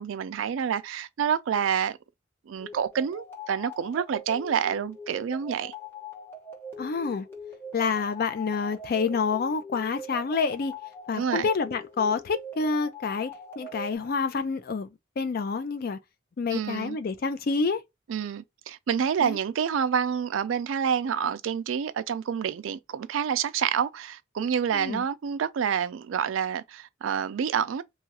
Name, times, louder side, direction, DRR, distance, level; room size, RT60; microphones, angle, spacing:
voice 1, 0.0-2.0 2.5-5.7 11.1-11.5 16.5-17.0 18.1-27.8, right 7 dB, 90° right, 0.4 m, -28 dB
sound 1, 2.6-14.0, left 1 dB, 15° left, 0.8 m, -42 dB
voice 2, 6.8-7.3 7.7-10.7 11.1-14.9 15.2-16.0 16.4-17.8 19.2-19.4 24.7-25.0, left 5 dB, 50° left, 0.4 m, -28 dB
3.0 x 2.4 x 2.8 m
head